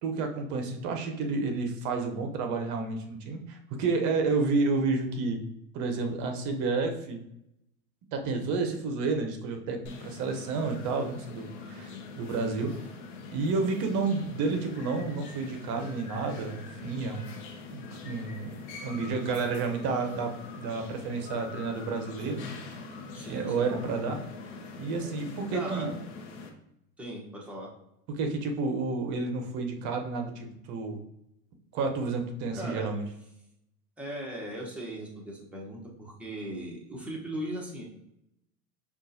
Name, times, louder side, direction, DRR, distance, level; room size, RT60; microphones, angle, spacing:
voice 1, 0.0-5.4 5.7-7.2 8.1-11.9 12.2-12.7 13.3-17.3 17.7-22.5 23.2-24.2 24.8-25.9 28.1-31.0 31.7-33.0, right 4 dB, 40° right, 5 dB, 0.8 m, -30 dB
sound 1, 9.8-26.5, left 4 dB, 50° left, 0.9 m, -44 dB
voice 2, 11.6-12.1 23.1-23.7 25.5-25.9 27.0-27.7 32.5-33.0 34.0-37.8, right 1 dB, 5° right, -3 dB, 0.9 m, -38 dB
5.2 x 2.5 x 2.7 m, 0.81 s
hypercardioid pair, 110°, 45 cm